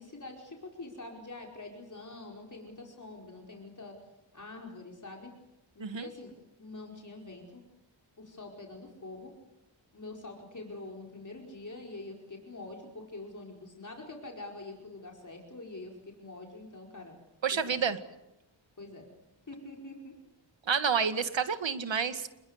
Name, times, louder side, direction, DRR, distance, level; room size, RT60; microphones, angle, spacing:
voice 1, 0.0-4.0 4.3-5.3 5.7-6.3 6.6-7.6 8.2-9.3 9.9-17.2 17.6-17.7 18.8-19.0 19.5-20.1, left 2 dB, 40° left, 0 dB, 4.9 m, -45 dB
voice 2, 17.4-18.0 20.7-22.3, right 6 dB, 75° right, 9 dB, 2.1 m, -29 dB
28.5 x 22.0 x 8.1 m, 0.90 s
wide cardioid pair, 110°, 46 cm